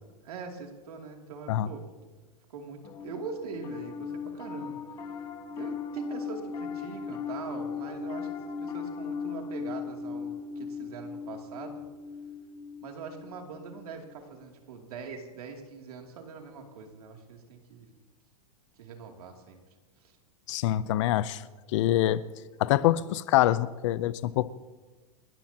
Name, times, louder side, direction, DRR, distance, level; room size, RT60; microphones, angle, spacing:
voice 1, 0.2-1.9 2.5-5.3 5.5-11.8 12.8-17.9 18.8-19.6 20.0-20.2, right 5 dB, 80° right, 2 dB, 2.9 m, -43 dB
Piano, 2.8-14.3, left 6 dB, 20° left, 1.6 m, -38 dB
voice 2, 20.5-21.4 21.7-22.2 22.6-24.6, left 14 dB, 55° left, 16 dB, 0.7 m, -25 dB
29.5 x 13.5 x 2.9 m, 1.3 s
supercardioid pair, 150°, 19 cm